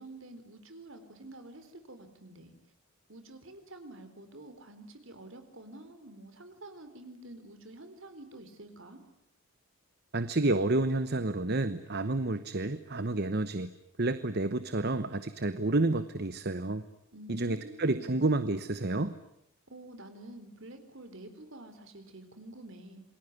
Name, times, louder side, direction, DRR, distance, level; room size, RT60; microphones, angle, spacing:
voice 1, 0.0-2.5 3.1-9.0 17.1-18.1 19.7-23.0, right 1 dB, 65° right, 8 dB, 4.1 m, -48 dB
voice 2, 10.1-13.7 14.0-16.9 17.3-19.1, right 2 dB, 50° right, 12 dB, 1.0 m, -30 dB
28.0 x 21.0 x 9.7 m, 0.80 s
head